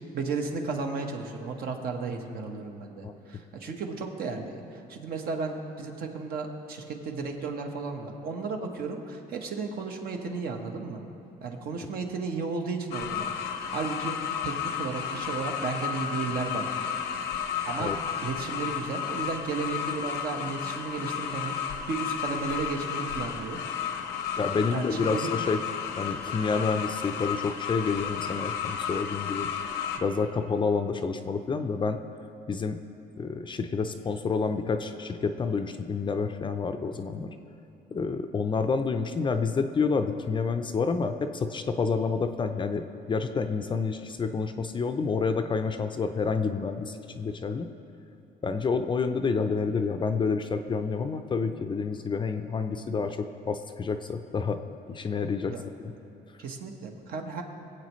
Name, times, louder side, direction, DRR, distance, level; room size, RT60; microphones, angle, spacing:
voice 1, 0.1-11.0 11.4-13.3 13.7-14.2 14.4-17.0 17.7-17.9 18.2-23.6 24.7-25.3 55.5-55.7 56.4-57.4, right 4 dB, 65° right, 3 dB, 1.3 m, -34 dB
sound 1, 12.9-30.0, left 8 dB, 85° left, 0.9 m, -33 dB
voice 2, 24.4-25.6 26.0-29.5 30.0-32.0 32.5-32.8 33.2-37.3 37.9-47.7 48.4-54.6 54.9-55.5 55.8-55.9, left 5 dB, 30° left, 7 dB, 0.5 m, -29 dB
21.0 x 8.1 x 3.1 m, 2.7 s
cardioid pair, 110°, 17 cm